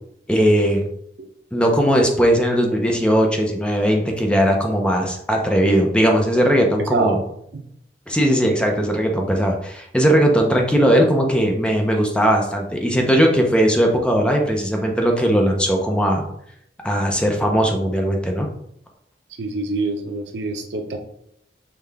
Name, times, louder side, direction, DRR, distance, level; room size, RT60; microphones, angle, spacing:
voice 1, 0.3-0.9 1.5-7.2 8.1-16.3 16.8-18.5, equal, 5° left, 1 dB, 0.6 m, -18 dB
voice 2, 6.8-7.2 7.5-7.6 19.4-21.0, right 2 dB, 75° right, 5 dB, 0.6 m, -25 dB
5.5 x 2.3 x 3.4 m, 0.73 s
head